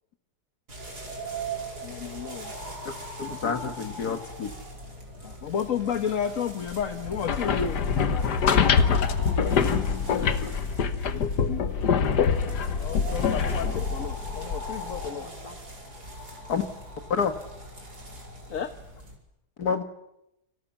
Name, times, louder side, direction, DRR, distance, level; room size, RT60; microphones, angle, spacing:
sound 1, 0.7-19.2, right 1 dB, 80° right, 5.7 m, -40 dB
voice 1, 1.8-2.5 5.2-7.8 12.8-15.3 18.5-18.7, left 7 dB, 55° left, 8 dB, 1.5 m, -32 dB
voice 2, 3.2-4.5 16.5-16.7 17.1-17.3 19.6-19.8, left 6 dB, 70° left, 7 dB, 2.0 m, -28 dB
sound 2, 7.0-15.1, left 6 dB, 90° left, 1.8 m, -25 dB
voice 3, 7.3-10.3 15.0-15.5, left 2 dB, 20° left, 4 dB, 3.3 m, -44 dB
29.5 x 24.0 x 7.2 m, 0.84 s
omnidirectional pair, 1.7 m